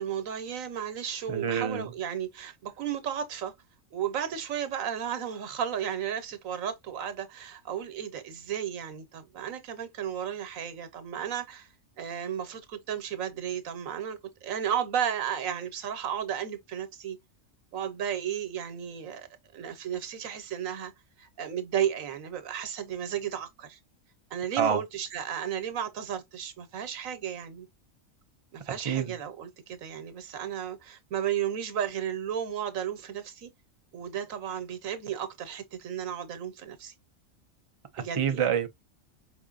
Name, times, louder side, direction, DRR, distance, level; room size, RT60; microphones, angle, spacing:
voice 1, 0.0-3.5 3.9-11.7 12.0-17.2 17.7-19.3 19.5-20.9 21.2-23.8 24.3-27.7 28.5-33.5 33.9-36.9 38.0-38.5, right 9 dB, 80° right, 1.3 m, -34 dB
voice 2, 1.3-1.9 24.6-24.8 28.8-29.2 37.9-38.7, right 7 dB, 40° right, 0.4 m, -27 dB
5.0 x 3.5 x 2.4 m
omnidirectional pair, 1.4 m